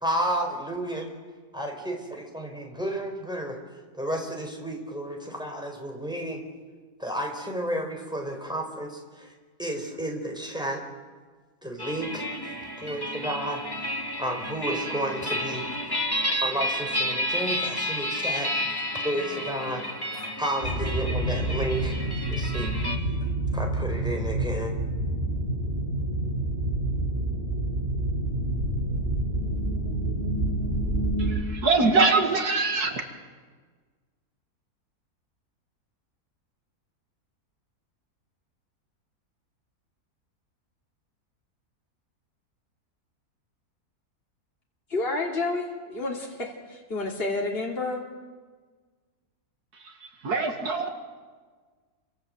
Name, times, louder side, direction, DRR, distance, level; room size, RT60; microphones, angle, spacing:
voice 1, 0.0-1.1 1.5-3.6 3.9-6.4 7.0-9.3 9.6-10.8 11.6-12.3 12.8-13.6 14.2-15.7 16.3-18.5 19.0-19.8 20.4-22.7 23.2-24.7, right 1 dB, 5° right, 1 dB, 4.5 m, -32 dB
sound 1, 11.8-23.0, equal, 15° left, 2.6 m, -31 dB
sound 2, 20.6-31.4, right 1 dB, 40° right, 5.9 m, -28 dB
voice 2, 31.2-33.0 49.7-50.9, right 3 dB, 80° right, 4 dB, 2.6 m, -24 dB
voice 3, 44.9-48.0, left 2 dB, 40° left, -2 dB, 3.2 m, -30 dB
28.5 x 25.5 x 7.8 m, 1.5 s
omnidirectional pair, 1.6 m